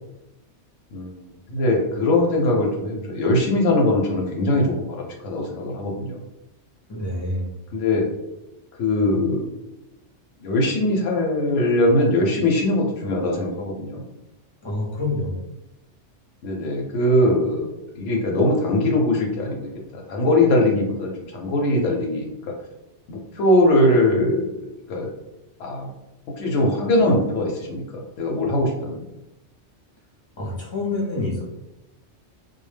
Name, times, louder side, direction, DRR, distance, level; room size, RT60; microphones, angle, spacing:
voice 1, 0.9-1.2 1.5-6.2 7.7-8.1 8.8-9.5 10.4-14.0 16.4-22.3 23.1-24.5 24.9-25.1 25.6-25.9 26.4-29.0, left 1 dB, 85° left, 0 dB, 0.9 m, -21 dB
voice 2, 6.9-7.4 14.6-15.4 30.4-31.4, left 2 dB, 35° left, -4 dB, 0.5 m, -27 dB
2.2 x 2.1 x 3.2 m, 0.95 s
omnidirectional pair, 1.2 m